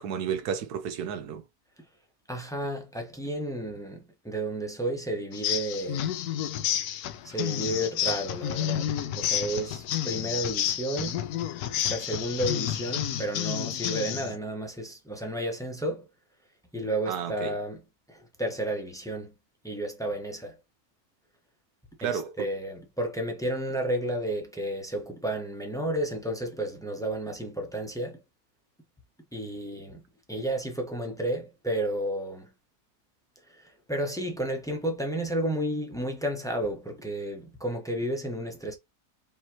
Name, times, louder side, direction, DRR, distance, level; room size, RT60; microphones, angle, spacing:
voice 1, 0.0-1.4 17.1-17.6 22.0-22.5, right 8 dB, 80° right, 1.2 m, -32 dB
voice 2, 2.3-6.1 7.2-11.2 11.9-16.1 16.7-17.8 18.1-19.3 19.6-20.6 22.0-28.2 29.3-30.0 30.3-32.5 33.5-38.7, right 1 dB, 5° left, 0.6 m, -32 dB
sound 1, 5.3-14.4, left 10 dB, 80° left, 1.1 m, -30 dB
5.1 x 3.0 x 2.9 m
omnidirectional pair, 1.6 m